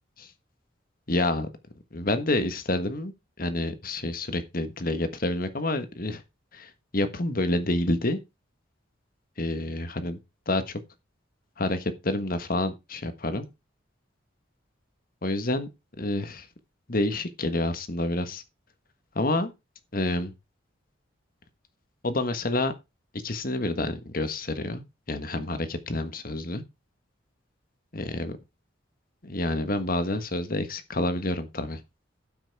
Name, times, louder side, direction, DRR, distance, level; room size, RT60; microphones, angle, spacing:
voice 1, 1.1-1.5 1.9-3.1 3.4-6.2 6.5-8.2 9.4-10.2 10.5-10.8 11.6-13.5 15.2-15.7 16.0-16.5 16.9-18.4 19.1-19.5 19.9-20.3 22.0-22.7 23.2-26.6 27.9-28.4 29.2-31.8, left 2 dB, 45° left, 1.4 m, -28 dB
12.5 x 6.1 x 4.7 m
head